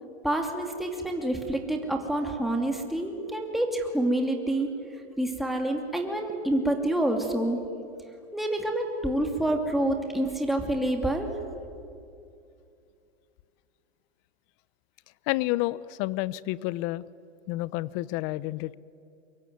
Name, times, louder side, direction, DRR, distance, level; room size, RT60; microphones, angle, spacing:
voice 1, 0.2-4.7 5.2-7.6 8.3-11.3, right 1 dB, ahead, 2 dB, 2.7 m, -27 dB
voice 2, 15.3-17.0 17.5-18.7, left 18 dB, 40° left, 20 dB, 0.8 m, -29 dB
24.0 x 22.0 x 9.5 m, 2.5 s
hypercardioid pair, 120°, 34 cm